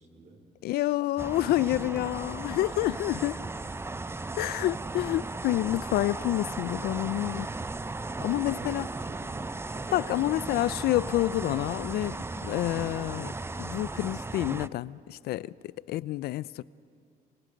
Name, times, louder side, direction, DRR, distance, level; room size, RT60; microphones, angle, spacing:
voice 1, 0.0-0.5 1.9-2.0 3.9-4.6 7.9-10.2 10.5-10.7, right 3 dB, 50° right, 4.9 m, -48 dB
voice 2, 0.6-3.4 4.4-7.5 8.2-8.9 9.9-16.6, left 15 dB, 85° left, 0.4 m, -28 dB
sound 1, 1.2-14.7, right 3 dB, 15° right, 0.6 m, -36 dB
27.0 x 25.0 x 5.2 m
cardioid pair, 75°, 16 cm